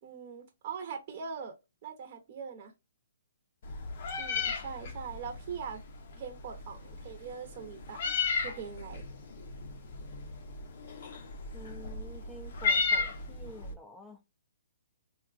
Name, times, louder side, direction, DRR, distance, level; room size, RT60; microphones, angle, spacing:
voice 1, 0.0-1.5 1.8-2.7 4.2-5.8 6.2-8.0 8.3-9.0, right 6 dB, 40° right, 0.7 m, -41 dB
Meow, 3.6-13.7, left 4 dB, 55° left, 0.6 m, -35 dB
voice 2, 11.5-14.2, equal, 5° left, 0.5 m, -49 dB
3.6 x 2.3 x 2.4 m
hypercardioid pair, 150°, 0 cm